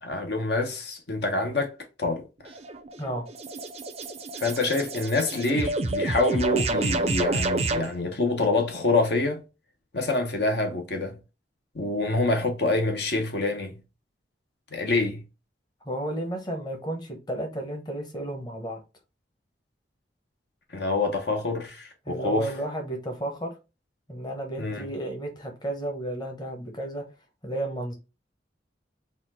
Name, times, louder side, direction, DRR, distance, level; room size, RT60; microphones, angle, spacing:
voice 1, 0.0-2.2 4.4-9.4 9.9-11.2 11.7-13.8 14.7-15.2 20.7-22.5 24.6-24.9, left 2 dB, 65° left, 1.0 m, -26 dB
Alien Message Received, 2.5-7.9, right 2 dB, 35° right, 0.5 m, -29 dB
voice 2, 15.8-18.8 22.0-23.6 24.1-27.0 27.4-27.9, right 1 dB, 25° left, 1.0 m, -33 dB
4.2 x 2.4 x 4.1 m
head